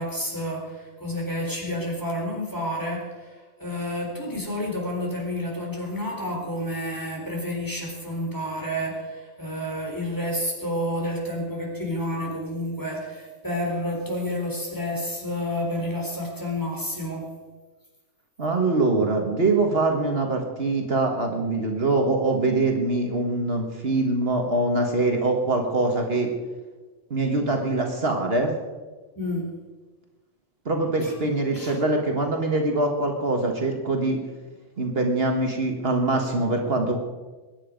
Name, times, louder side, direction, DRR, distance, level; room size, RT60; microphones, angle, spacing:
voice 1, 0.0-17.3 29.2-29.5 31.0-31.1 31.5-31.8, left 1 dB, 15° left, -1 dB, 4.1 m, -30 dB
voice 2, 18.4-26.3 27.1-28.5 30.7-34.2 34.8-37.0, right 2 dB, 55° right, 2 dB, 1.8 m, -23 dB
22.0 x 10.0 x 5.2 m, 1.3 s
omnidirectional pair, 1.2 m